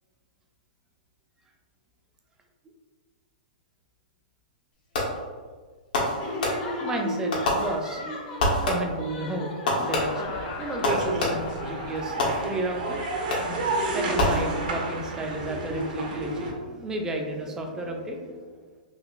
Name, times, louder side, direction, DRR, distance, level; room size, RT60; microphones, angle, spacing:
Fireworks, 4.9-5.4 5.9-6.9 7.3-8.1 8.4-9.1 9.7-11.6 12.2-12.8 13.3-13.7 14.2-14.9, left 1 dB, 70° left, 1.1 m, -27 dB
Laughter, 6.2-12.5, left 2 dB, 45° left, 0.8 m, -36 dB
voice 1, 6.8-8.0 8.6-9.5 9.8-12.2 12.4-13.0 13.9-18.5, right 2 dB, 15° right, 2 dB, 0.4 m, -32 dB
sound 1, 10.0-16.5, right 2 dB, 65° right, 0.8 m, -31 dB
3.8 x 2.8 x 2.4 m, 1.5 s
hypercardioid pair, 135°, 5 cm